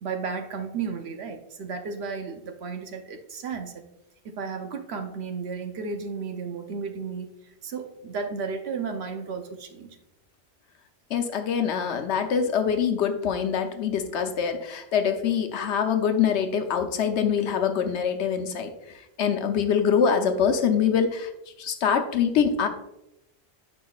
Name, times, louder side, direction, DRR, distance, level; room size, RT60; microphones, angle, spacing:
voice 1, 0.0-3.8 4.2-10.0, right 5 dB, 70° right, 6 dB, 1.0 m, -33 dB
voice 2, 11.1-18.7 19.2-21.3 21.6-22.7, left 7 dB, 85° left, 6 dB, 1.0 m, -24 dB
8.2 x 5.1 x 2.3 m, 0.88 s
omnidirectional pair, 1.1 m